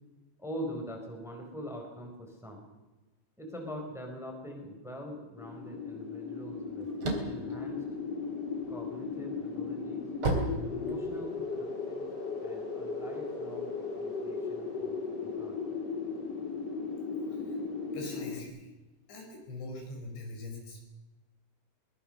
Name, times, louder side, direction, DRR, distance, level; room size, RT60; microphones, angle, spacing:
voice 1, 0.4-2.6 3.4-6.9 7.2-7.8 8.7-10.1 10.6-12.1 12.4-13.7 14.0-15.6, equal, ahead, 2 dB, 4.1 m, -43 dB
sound 1, 5.4-18.4, left 4 dB, 35° left, 2.1 m, -36 dB
sound 2, 6.5-8.7 9.2-11.4, right 2 dB, 30° right, 3.9 m, -33 dB
voice 2, 17.9-18.7 19.1-20.8, left 2 dB, 80° left, 2 dB, 7.4 m, -42 dB
23.5 x 20.5 x 6.7 m, 1.1 s
omnidirectional pair, 5.0 m